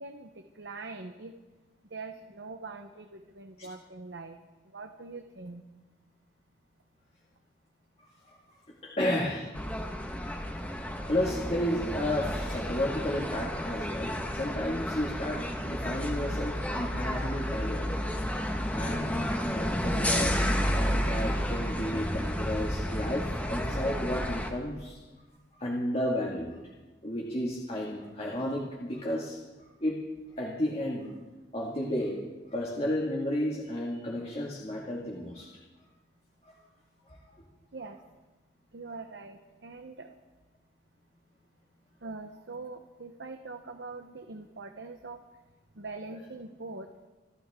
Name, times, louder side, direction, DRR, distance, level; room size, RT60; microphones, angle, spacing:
voice 1, 0.0-1.3 1.9-4.4 4.7-5.6 37.7-38.0 38.7-40.1 42.0-45.2 45.8-46.9, right 3 dB, 75° right, 5 dB, 1.0 m, -43 dB
voice 2, 8.0-8.4 8.8-9.5 11.1-18.0 18.7-25.0 25.6-26.6 27.0-30.0 30.4-31.1 31.5-32.2 32.5-35.5 36.4-36.5 37.1-37.4, left 1 dB, 35° left, -3 dB, 2.1 m, -33 dB
sound 1, 9.5-24.5, equal, 10° left, 1.5 m, -31 dB
27.5 x 12.5 x 3.7 m, 1.2 s
head